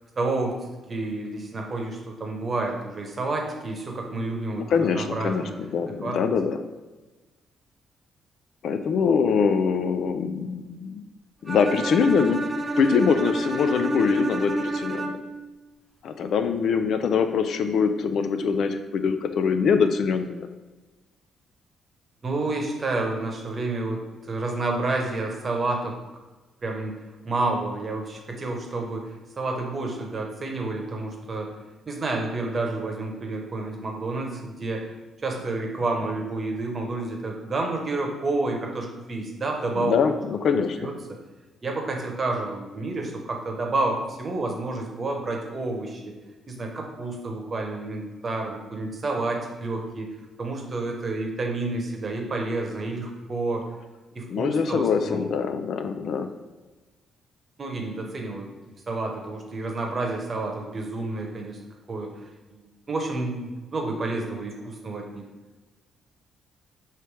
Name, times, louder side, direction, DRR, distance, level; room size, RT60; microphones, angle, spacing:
voice 1, 0.2-0.6 0.9-5.6 6.0-6.4 22.2-26.0 26.6-26.9 27.2-31.5 31.9-34.9 35.2-40.0 40.5-40.9 41.6-46.1 46.5-50.1 50.4-53.7 54.1-55.3 57.6-61.6 61.9-65.2, right 2 dB, 35° right, 1 dB, 0.9 m, -30 dB
voice 2, 4.6-6.6 8.6-11.0 11.4-12.4 12.8-15.2 16.0-20.5 39.8-40.9 54.3-56.3, left 6 dB, 65° left, 8 dB, 0.3 m, -23 dB
Bowed string instrument, 11.5-15.5, right 1 dB, 15° right, 0.5 m, -29 dB
3.2 x 2.9 x 4.6 m, 1.2 s
cardioid pair, 90°, 0 cm